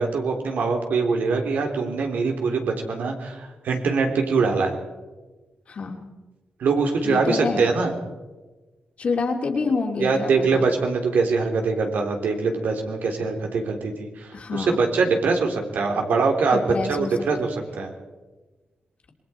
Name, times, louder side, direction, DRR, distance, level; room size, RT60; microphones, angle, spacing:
voice 1, 0.0-4.8 6.6-7.9 10.0-17.9, right 4 dB, 75° right, 2 dB, 3.6 m, -23 dB
voice 2, 5.7-6.1 7.0-7.7 9.0-10.7 14.3-14.8 16.5-17.1 17.4-17.5, left 4 dB, 45° left, 2 dB, 2.8 m, -27 dB
27.0 x 22.0 x 4.5 m, 1.2 s
wide cardioid pair, 155°, 3 cm